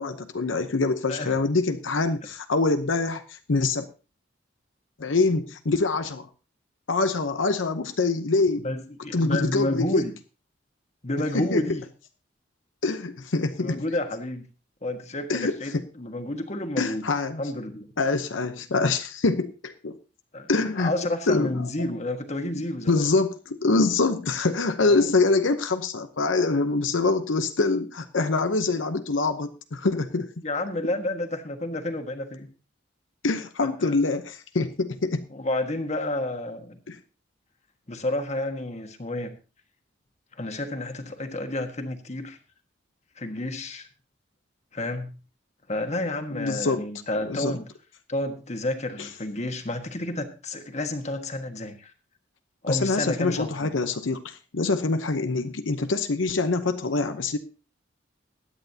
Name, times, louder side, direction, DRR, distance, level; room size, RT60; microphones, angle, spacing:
voice 1, 0.0-3.9 5.0-6.3 6.9-8.7 9.1-10.0 11.3-11.6 12.8-13.8 15.3-15.8 16.8-17.4 18.0-20.0 20.5-20.9 21.3-21.9 22.9-30.3 33.2-35.2 36.9-37.0 46.3-46.9 47.3-47.6 52.7-57.4, left 3 dB, 90° left, 9 dB, 0.8 m, -25 dB
voice 2, 8.6-10.1 11.0-11.8 13.6-14.4 14.8-17.0 17.4-17.9 20.3-20.5 20.8-23.1 24.8-25.1 30.4-32.5 33.8-34.0 35.3-36.8 37.9-39.3 40.4-42.4 43.2-43.9 44.7-45.1 45.7-47.7 48.1-51.9 52.6-53.7, left 1 dB, 35° left, 6 dB, 1.5 m, -30 dB
21.0 x 9.1 x 2.8 m, 0.33 s
head